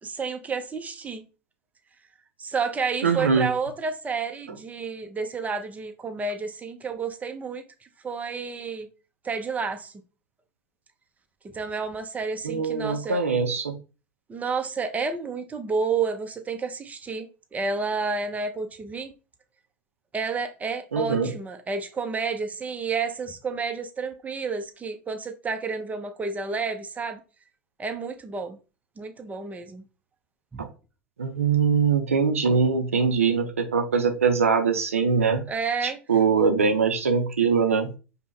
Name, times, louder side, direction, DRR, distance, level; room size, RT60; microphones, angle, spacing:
voice 1, 0.0-1.2 2.4-7.6 8.0-8.9 9.2-9.9 11.5-13.2 14.3-19.1 20.1-27.2 27.8-28.6 29.0-29.8 30.5-30.7 35.5-36.0, right 4 dB, 20° right, 0.7 m, -30 dB
voice 2, 3.0-3.5 12.4-13.8 20.9-21.3 30.6-30.7 31.2-35.4 35.8-37.9, right 5 dB, 85° right, 0.5 m, -22 dB
5.1 x 2.2 x 3.1 m
figure-of-eight pair, 75°, 7 cm